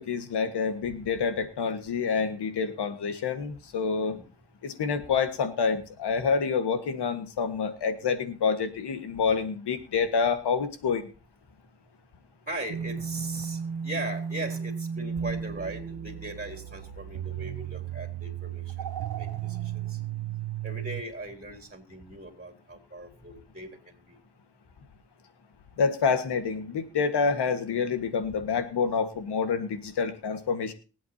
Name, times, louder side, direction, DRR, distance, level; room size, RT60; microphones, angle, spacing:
voice 1, 0.0-4.2 4.6-11.0 25.8-30.7, left 5 dB, 85° left, 9 dB, 1.6 m, -27 dB
voice 2, 12.5-20.0 20.6-24.2, right 1 dB, 20° right, 2 dB, 3.6 m, -39 dB
sound 1, 12.7-21.0, right 8 dB, 70° right, 1.1 m, -34 dB
23.5 x 8.5 x 2.8 m, 0.35 s
cardioid pair, 60°, 39 cm